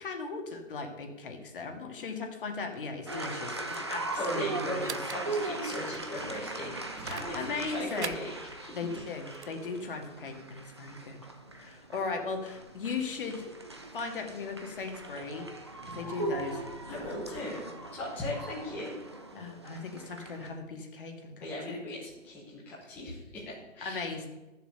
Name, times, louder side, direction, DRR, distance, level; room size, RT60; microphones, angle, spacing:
voice 1, 0.0-5.0 7.3-8.2 8.7-11.2 11.5-13.5 13.9-15.5 15.9-16.6 19.3-21.8 23.8-24.3, left 4 dB, 40° left, 3 dB, 2.1 m, -37 dB
sound 1, 3.0-9.6, right 7 dB, 55° right, 0.8 m, -46 dB
sound 2, 3.1-20.5, right 2 dB, 20° right, 0.6 m, -40 dB
voice 2, 3.7-8.7 16.8-17.7 17.9-19.0 21.4-24.1, left 1 dB, 5° left, -8 dB, 1.3 m, -38 dB
sound 3, 6.2-9.2 9.5-10.6 10.9-11.0 11.5-17.2, right 2 dB, 40° right, 1.9 m, -53 dB
13.5 x 7.3 x 6.8 m, 1.1 s
hypercardioid pair, 170°, 39 cm